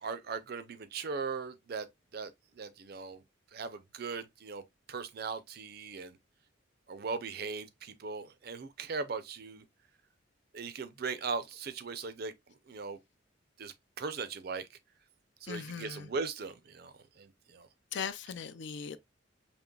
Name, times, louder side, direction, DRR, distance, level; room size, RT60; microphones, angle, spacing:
voice 1, 0.0-1.9 2.1-3.2 3.5-6.2 6.9-9.6 10.5-12.3 12.7-13.0 13.6-14.7 15.4-17.7, right 4 dB, 50° right, 0.5 m, -39 dB
voice 2, 15.5-16.1 17.9-19.0, left 7 dB, 60° left, 0.4 m, -39 dB
5.2 x 2.9 x 2.3 m
head